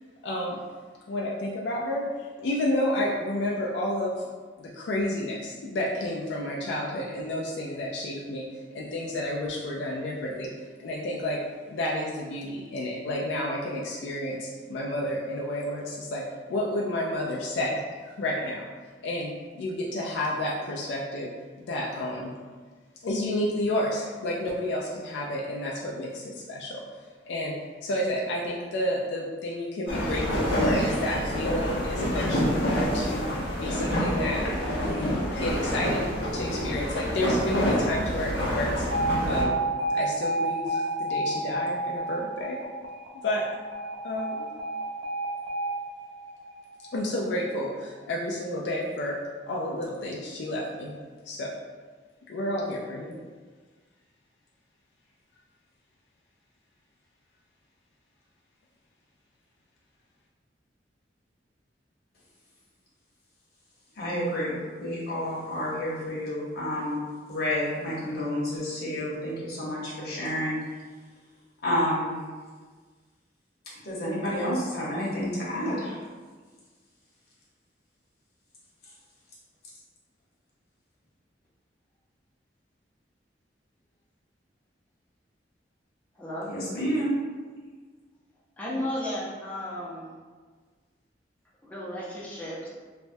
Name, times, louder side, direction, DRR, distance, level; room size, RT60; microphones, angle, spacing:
voice 1, 0.2-0.6 1.1-4.3 4.6-8.5 8.7-10.5 10.8-11.4 11.7-16.2 16.5-18.7 19.0-21.3 21.6-22.3 23.0-26.8 27.3-27.5 27.8-33.3 33.6-34.4 34.8-38.9 39.3-39.5 39.9-42.6 43.2-43.5 44.0-44.6 46.9-49.2 49.5-50.9 51.3-51.5 52.3-53.2, left 1 dB, 75° left, -3 dB, 0.3 m, -30 dB
sound 1, 29.9-39.4, equal, 90° left, 0.7 m, -27 dB
Alarm, 38.9-47.0, right 2 dB, 80° right, 0.5 m, -30 dB
voice 2, 64.0-64.5 64.8-67.0 67.3-70.6 71.6-72.1 73.8-76.0 86.5-87.1, equal, 60° left, -6 dB, 0.9 m, -29 dB
voice 3, 86.2-86.5 88.6-90.2 91.6-92.7, left 1 dB, 10° left, -8 dB, 0.5 m, -34 dB
3.2 x 2.1 x 2.6 m, 1.5 s
head